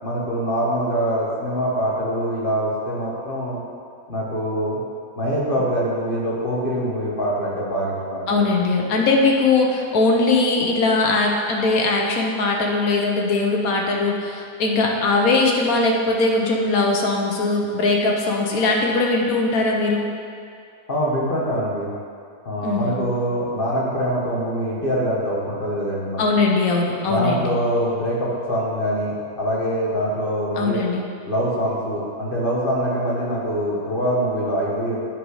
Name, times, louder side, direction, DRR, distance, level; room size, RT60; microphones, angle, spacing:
voice 1, 0.0-3.6 4.1-4.8 5.1-8.3 20.9-21.9 22.4-26.2 27.0-30.8 31.2-35.0, equal, 35° left, -5 dB, 1.5 m, -24 dB
voice 2, 8.3-20.1 22.6-23.0 26.2-27.6 30.6-31.0, left 3 dB, 70° left, 0 dB, 1.4 m, -20 dB
9.2 x 5.4 x 4.8 m, 2.3 s
omnidirectional pair, 1.6 m